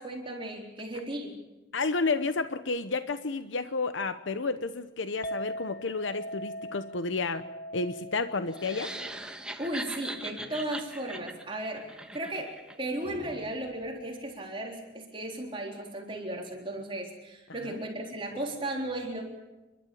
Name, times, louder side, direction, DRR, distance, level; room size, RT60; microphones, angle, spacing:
voice 1, 0.0-1.4 9.6-11.9 12.1-19.2, right 1 dB, 25° right, -1 dB, 3.7 m, -35 dB
voice 2, 1.7-7.4 7.7-8.9 17.6-17.8, left 3 dB, 80° left, 11 dB, 0.9 m, -31 dB
Chink clink, 5.2-11.5, equal, 50° left, 0.9 m, -42 dB
sound 1, 8.5-12.8, right 1 dB, 5° right, 1.3 m, -40 dB
30.0 x 12.5 x 8.6 m, 1.1 s
head